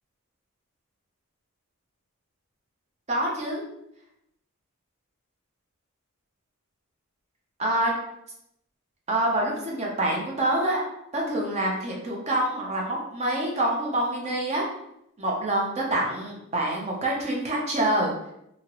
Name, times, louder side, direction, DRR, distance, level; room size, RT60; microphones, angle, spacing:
voice 1, 3.1-3.6 7.6-7.9 9.1-10.8 11.1-14.7 15.2-18.3, right 1 dB, 30° right, -2 dB, 0.7 m, -26 dB
2.8 x 2.7 x 2.9 m, 0.80 s
head